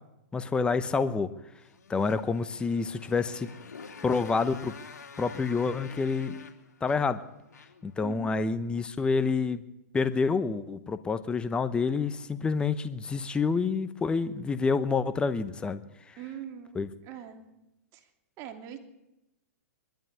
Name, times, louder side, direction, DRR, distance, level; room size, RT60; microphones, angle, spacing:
voice 1, 0.3-1.3 1.9-3.5 4.0-4.7 5.2-6.4 6.8-7.2 7.8-9.6 9.9-15.8 16.1-16.2 16.7-16.9, left 4 dB, 10° left, 12 dB, 0.9 m, -28 dB
Motorcycle, 1.6-7.9, left 5 dB, 85° left, 3.0 m, -48 dB
voice 2, 8.0-8.4 16.2-16.8 17.0-17.5 17.9-18.1 18.4-18.8, right 10 dB, 35° right, 5 dB, 3.0 m, -42 dB
22.0 x 13.0 x 9.7 m, 0.92 s
hypercardioid pair, 135°, 9 cm